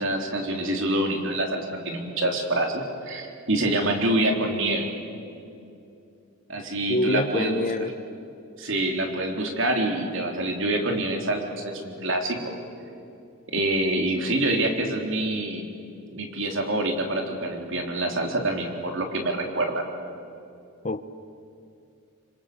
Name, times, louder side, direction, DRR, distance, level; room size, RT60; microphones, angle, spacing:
voice 1, 0.0-4.9 6.5-7.6 8.6-12.5 13.5-15.7 16.1-19.8, right 1 dB, 60° right, 3.8 m, -26 dB
voice 2, 6.9-7.9 20.8-21.0, left 1 dB, 35° left, 0.9 m, -25 dB
26.5 x 26.0 x 8.0 m
head